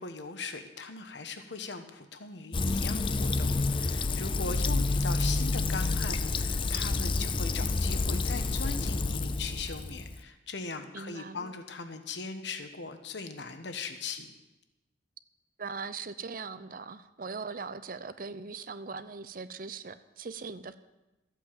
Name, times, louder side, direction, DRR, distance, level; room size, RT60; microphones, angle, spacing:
voice 1, 0.0-14.3, left 4 dB, 70° left, 7 dB, 1.2 m, -39 dB
Fill (with liquid), 2.5-10.2, left 3 dB, 25° left, 0.5 m, -29 dB
voice 2, 4.4-4.8 10.9-11.5 15.6-20.7, right 4 dB, 50° right, 12 dB, 0.6 m, -40 dB
14.0 x 8.2 x 7.5 m, 1.0 s
head